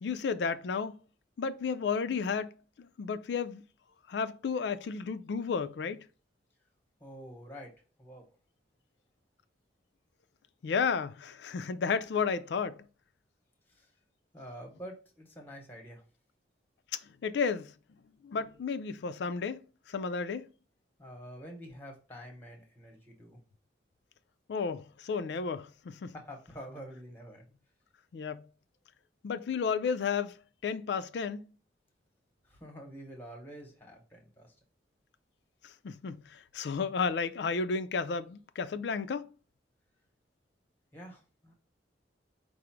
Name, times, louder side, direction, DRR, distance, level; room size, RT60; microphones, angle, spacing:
voice 1, 0.0-1.0 1.4-2.5 2.8-3.6 4.1-6.0 10.6-12.8 16.9-17.7 18.2-20.5 24.5-26.1 28.1-28.5 29.2-30.4 30.6-31.5 35.6-39.3, left 5 dB, 65° left, 0.3 m, -32 dB
voice 2, 7.0-7.7 8.0-8.2 13.7-13.9 14.3-16.0 21.0-23.4 26.1-27.4 32.4-34.5 40.9-41.5, equal, 10° left, 0.9 m, -47 dB
4.9 x 2.0 x 4.4 m
head